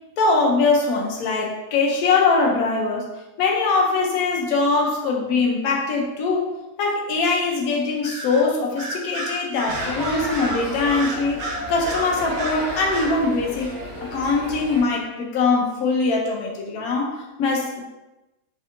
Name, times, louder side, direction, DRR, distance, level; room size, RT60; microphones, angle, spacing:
voice 1, 0.2-3.1 3.4-6.5 6.8-11.4 11.7-13.7 14.0-17.8, left 3 dB, 85° left, 0 dB, 1.1 m, -22 dB
Bird vocalization bird call bird song, 8.0-8.4 8.8-12.6 12.9-13.1, right 2 dB, 75° right, 1.0 m, -31 dB
sound 1, 9.7-14.8, equal, 55° right, 1.3 m, -32 dB
3.3 x 2.6 x 2.5 m, 1.0 s
omnidirectional pair, 1.5 m